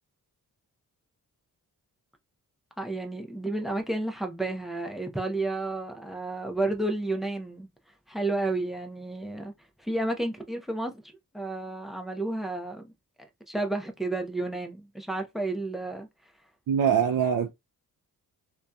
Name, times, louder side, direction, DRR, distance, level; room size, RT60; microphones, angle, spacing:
voice 1, 2.8-7.7 8.1-9.5 9.8-11.0 11.3-12.9 13.5-16.1, right 2 dB, ahead, 0.5 m, -31 dB
voice 2, 16.7-17.5, right 8 dB, 65° right, 0.5 m, -23 dB
2.6 x 2.3 x 2.2 m
wide cardioid pair, 120°, 36 cm